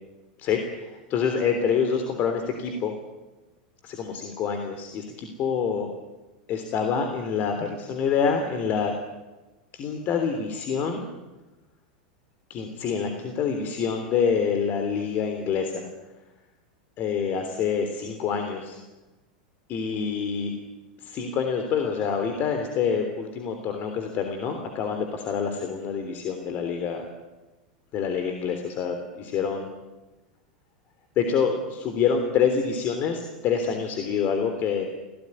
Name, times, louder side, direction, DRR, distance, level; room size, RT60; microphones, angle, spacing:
voice 1, 0.4-2.9 3.8-5.9 6.5-8.9 9.7-11.1 12.5-15.9 17.0-18.8 19.7-20.5 21.0-27.0 27.9-29.7 31.2-34.8, left 6 dB, 45° left, 6 dB, 3.4 m, -26 dB
25.5 x 17.0 x 10.0 m, 1.1 s
hypercardioid pair, 105°, 5 cm